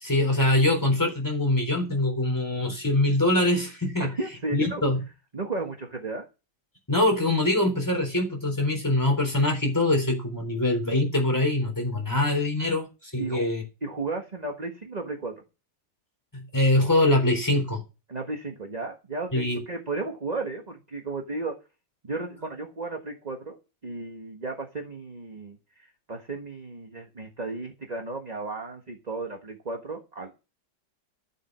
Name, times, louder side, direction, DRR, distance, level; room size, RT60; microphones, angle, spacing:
voice 1, 0.0-4.1 4.5-5.0 6.9-13.6 16.3-17.8 19.3-19.6, left 1 dB, 10° left, 3.9 m, -23 dB
voice 2, 4.0-4.8 5.3-6.3 13.2-13.5 13.8-15.4 18.1-21.5 22.0-30.4, right 3 dB, 25° right, 1.5 m, -34 dB
12.5 x 7.9 x 6.2 m
omnidirectional pair, 1.8 m